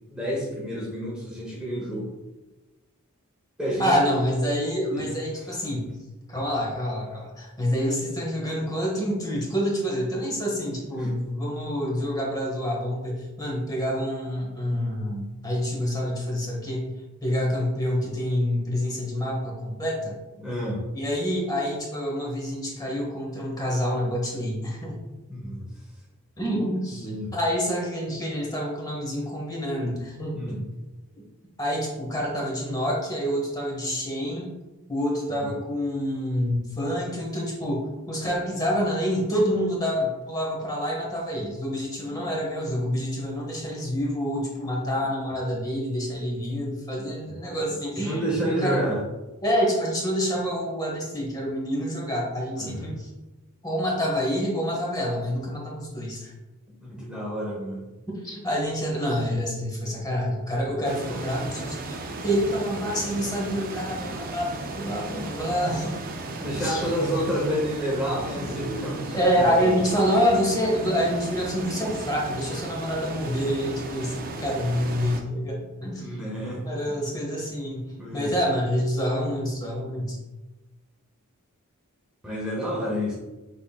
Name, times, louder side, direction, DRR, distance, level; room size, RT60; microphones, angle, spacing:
voice 1, 0.1-2.1 3.6-4.0 4.9-5.3 11.0-11.1 20.4-20.8 25.3-25.7 27.0-27.3 30.3-30.7 35.3-35.6 42.1-42.3 47.0-47.3 48.0-49.0 52.5-52.9 56.8-57.9 65.1-65.3 66.4-69.8 75.9-76.6 78.0-78.3 82.2-83.1, equal, 5° right, -5 dB, 0.9 m, -30 dB
voice 2, 3.8-5.9 6.3-16.9 17.2-20.2 20.9-25.0 26.4-30.3 31.6-34.5 34.9-48.8 49.4-53.1 53.6-56.3 58.2-65.9 66.6-67.1 68.3-68.4 69.1-76.2 76.6-80.2, equal, 20° left, -2 dB, 1.1 m, -27 dB
sound 1, 60.8-75.2, right 2 dB, 40° right, 0.5 m, -36 dB
6.0 x 3.6 x 2.3 m, 1.1 s
head